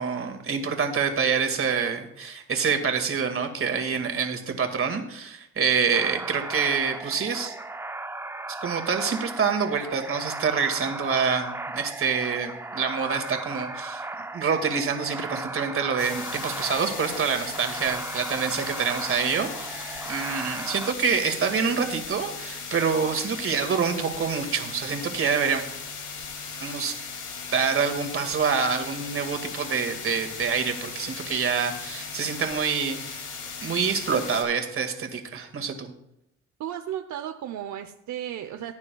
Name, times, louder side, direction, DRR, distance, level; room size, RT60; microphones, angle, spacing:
voice 1, 0.0-7.5 8.6-14.0 14.3-25.6 26.6-27.0 27.5-33.2 33.6-35.9, right 6 dB, 45° right, 5 dB, 2.1 m, -26 dB
sound 1, 5.9-20.9, right 2 dB, 10° right, 0.5 m, -36 dB
sound 2, 16.0-34.4, left 5 dB, 80° left, 2.5 m, -37 dB
voice 2, 36.6-38.7, right 11 dB, 70° right, 6 dB, 0.8 m, -34 dB
18.0 x 9.5 x 2.3 m, 0.80 s
cardioid pair, 90°, 30 cm